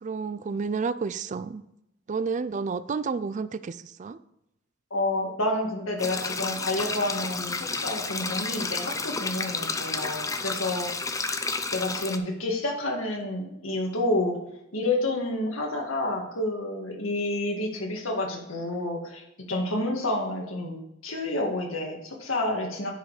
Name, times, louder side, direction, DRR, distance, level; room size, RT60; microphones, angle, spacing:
voice 1, 0.0-1.6 2.1-4.2, right 5 dB, 35° right, 15 dB, 0.3 m, -30 dB
voice 2, 4.9-11.2 11.7-14.4 14.7-23.0, left 1 dB, 90° left, 1 dB, 1.9 m, -29 dB
sound 1, 6.0-12.2, left 4 dB, 15° left, 0.5 m, -31 dB
9.9 x 5.2 x 4.9 m, 0.82 s
head